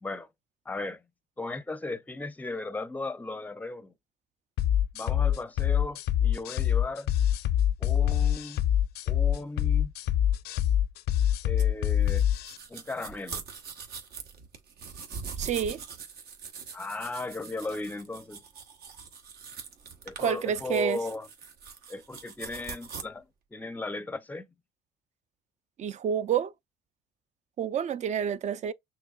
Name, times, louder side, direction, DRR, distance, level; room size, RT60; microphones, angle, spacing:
voice 1, 0.7-1.0 1.4-3.9 4.9-7.1 7.8-8.7 9.1-9.9 11.4-12.3 12.7-13.4 16.7-18.4 20.0-21.3 21.9-23.3 23.5-24.5, left 2 dB, 10° left, 0.5 m, -36 dB
sound 1, 4.6-12.6, left 10 dB, 75° left, 0.5 m, -25 dB
sound 2, 11.6-23.0, right 6 dB, 70° right, 1.2 m, -43 dB
voice 2, 15.4-15.8 20.2-21.0 25.8-26.5 27.6-28.7, right 8 dB, 45° right, 0.5 m, -28 dB
6.3 x 3.0 x 2.4 m
cardioid pair, 110°, 17 cm